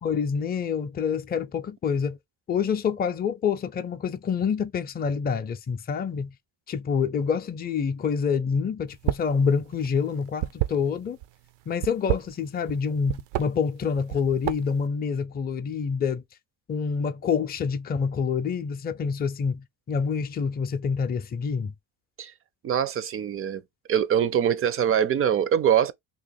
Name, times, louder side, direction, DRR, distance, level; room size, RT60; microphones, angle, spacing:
voice 1, 0.0-2.2 2.5-6.3 6.7-11.2 11.7-16.2 16.7-21.7, left 6 dB, 25° left, 0.5 m, -27 dB
sound 1, 8.9-9.4 9.6-11.3 11.7-12.8 13.1-13.5 14.0-14.8, right 15 dB, 85° right, 0.5 m, -28 dB
voice 2, 22.6-23.6 23.9-25.9, right 9 dB, 35° right, 0.4 m, -23 dB
3.0 x 2.9 x 4.1 m
cardioid pair, 125°, 41 cm